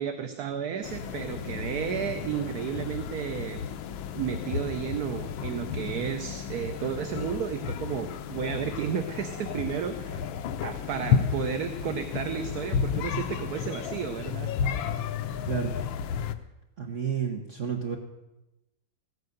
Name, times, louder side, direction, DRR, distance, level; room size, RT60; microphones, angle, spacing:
voice 1, 0.0-3.6 4.1-10.2 10.6-14.5, right 8 dB, 60° right, 7 dB, 1.2 m, -32 dB
sound 1, 0.8-16.4, left 7 dB, 80° left, 1.5 m, -32 dB
voice 2, 16.8-18.0, right 7 dB, 45° right, 3 dB, 1.4 m, -30 dB
15.5 x 9.5 x 6.6 m, 0.95 s
omnidirectional pair, 2.2 m